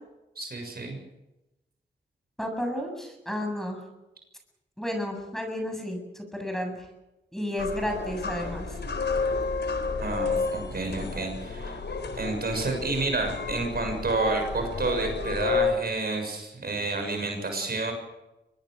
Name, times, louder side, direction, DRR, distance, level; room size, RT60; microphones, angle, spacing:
voice 1, 0.3-1.0 10.0-11.8 12.1-17.9, right 2 dB, 55° right, 4 dB, 6.8 m, -30 dB
voice 2, 2.4-3.8 4.8-6.9 7.3-8.8, left 1 dB, ahead, 4 dB, 7.6 m, -32 dB
sound 1, 7.6-15.7, left 4 dB, 65° left, 4.0 m, -31 dB
24.5 x 21.0 x 6.6 m, 0.97 s
cardioid pair, 70°, 19 cm